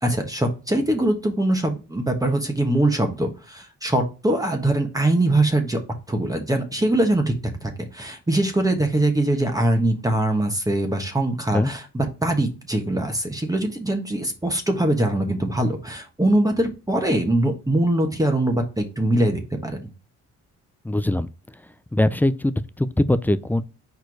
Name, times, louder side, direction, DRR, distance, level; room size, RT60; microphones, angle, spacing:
voice 1, 0.0-5.8 6.1-19.9, right 1 dB, 10° right, 1.2 m, -22 dB
voice 2, 20.8-21.3 21.9-23.6, left 1 dB, 5° left, 0.4 m, -21 dB
4.6 x 4.4 x 4.7 m
cardioid pair, 90°, 30 cm